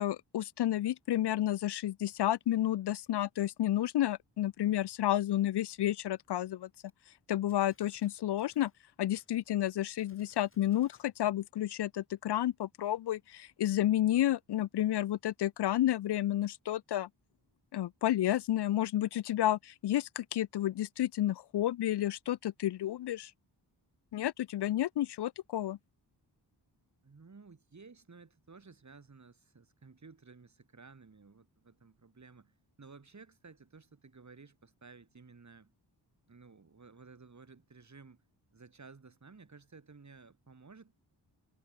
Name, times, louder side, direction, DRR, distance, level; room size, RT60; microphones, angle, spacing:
voice 1, 0.0-6.7 7.3-8.7 9.0-17.1 17.7-23.3 24.1-25.8, left 13 dB, 70° left, 0.5 m, -31 dB
Gunshot gunfire, 6.9-7.0 7.5-8.8 9.1-9.3 10.0-11.1, left 3 dB, 30° left, 5.0 m, -67 dB
voice 2, 27.0-35.7 36.3-38.2 38.5-40.9, right 4 dB, 40° right, 4.6 m, -55 dB
wide cardioid pair, 100°, 43 cm